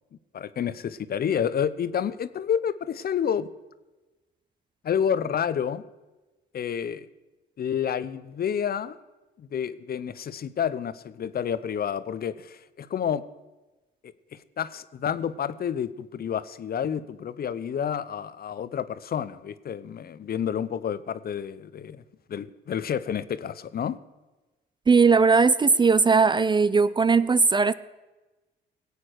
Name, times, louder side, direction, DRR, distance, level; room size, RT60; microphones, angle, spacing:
voice 1, 0.3-3.5 4.8-5.8 6.5-7.1 7.6-9.0 9.4-13.2 14.3-22.0 22.3-24.0, left 8 dB, 50° left, 15 dB, 0.7 m, -29 dB
voice 2, 24.9-27.7, right 4 dB, 25° right, 17 dB, 0.4 m, -19 dB
17.5 x 8.3 x 6.4 m, 1.1 s
cardioid pair, 90°, 20 cm